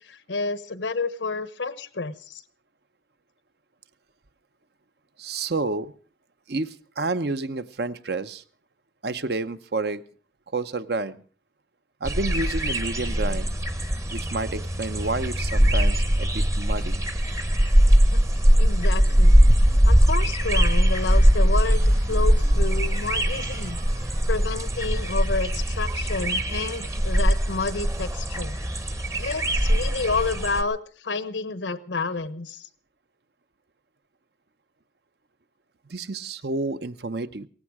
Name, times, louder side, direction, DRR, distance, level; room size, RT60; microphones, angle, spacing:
voice 1, 0.0-2.4 18.1-23.8 24.3-28.6 29.2-32.7, left 4 dB, 80° left, 14 dB, 1.1 m, -30 dB
voice 2, 5.2-5.9 6.5-8.4 9.0-10.0 10.5-11.2 12.0-13.5 14.1-17.0 35.9-37.5, right 3 dB, 60° right, 12 dB, 0.8 m, -30 dB
sound 1, 12.0-30.6, equal, 15° right, 0.8 m, -21 dB
sound 2, 19.1-19.9 21.8-25.4, right 2 dB, 85° right, 4.8 m, -48 dB
17.5 x 15.0 x 4.7 m, 0.41 s
head